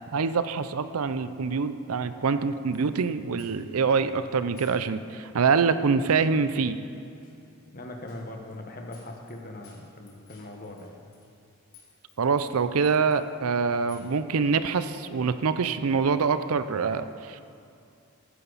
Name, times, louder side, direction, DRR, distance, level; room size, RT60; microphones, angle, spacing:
voice 1, 0.1-6.8 12.2-17.4, right 5 dB, 75° right, 12 dB, 0.5 m, -25 dB
sound 1, 2.7-3.0 3.4-3.8 4.6-4.8 5.1-5.2 6.0-6.2 7.2-7.4 8.1-8.2 8.5-8.6 8.9-9.4 9.6-11.4 11.7-12.1 12.4-13.3 13.9-14.2, left 6 dB, 80° left, 2.8 m, -55 dB
voice 2, 7.7-11.0, left 1 dB, 40° left, 2 dB, 1.3 m, -40 dB
15.0 x 9.9 x 4.1 m, 2.6 s
head